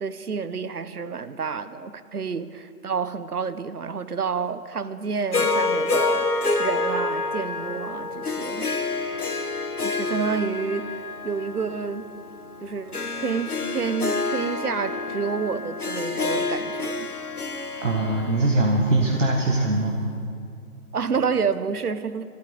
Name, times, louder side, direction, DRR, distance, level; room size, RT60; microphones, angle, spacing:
voice 1, 0.0-8.7 9.8-10.9 11.2-12.1 12.6-17.1 20.9-22.2, right 5 dB, 80° right, 13 dB, 0.9 m, -29 dB
Harp, 5.3-19.7, left 3 dB, 75° left, 1.5 m, -28 dB
voice 2, 17.8-20.0, right 2 dB, 55° right, 1 dB, 1.5 m, -22 dB
22.5 x 12.5 x 3.9 m, 2.4 s
figure-of-eight pair, 155°, 45 cm